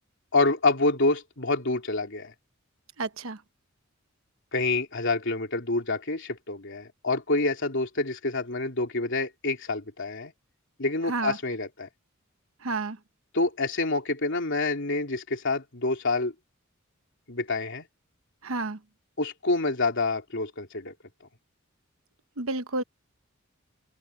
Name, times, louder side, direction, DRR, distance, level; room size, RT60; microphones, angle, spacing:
voice 1, 0.3-2.3 4.5-10.3 10.8-11.9 13.3-16.3 17.3-17.9 19.2-20.9, left 3 dB, 60° left, 3.4 m, -27 dB
voice 2, 3.0-3.4 11.1-11.4 12.6-13.0 18.4-18.8 22.4-22.8, right 3 dB, 75° right, 1.1 m, -30 dB
open air
head